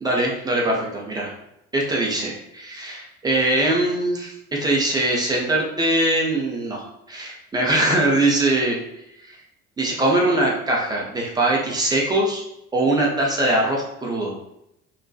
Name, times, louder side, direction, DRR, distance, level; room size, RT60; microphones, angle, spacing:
voice 1, 0.0-1.3 1.7-8.8 9.2-9.4 9.8-12.4 12.7-14.3, right 1 dB, 10° right, -2 dB, 0.4 m, -22 dB
2.6 x 2.2 x 2.3 m, 0.82 s
figure-of-eight pair, 65°, 44 cm